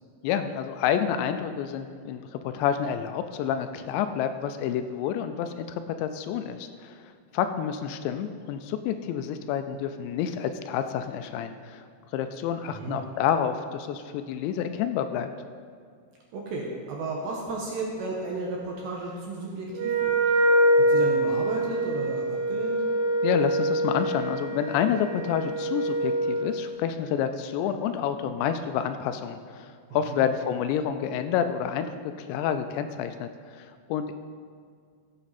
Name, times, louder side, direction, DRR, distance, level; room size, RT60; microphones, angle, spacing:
voice 1, 0.2-11.9 12.1-15.3 23.2-31.9 32.2-34.1, left 8 dB, 85° left, 9 dB, 2.7 m, -29 dB
voice 2, 12.7-13.0 16.3-20.2 20.8-22.8 30.1-30.3, right 3 dB, 70° right, -2 dB, 2.4 m, -33 dB
Wind instrument woodwind instrument, 19.8-26.4, right 1 dB, 85° right, 4.0 m, -25 dB
15.5 x 7.8 x 4.1 m, 2.1 s
omnidirectional pair, 5.3 m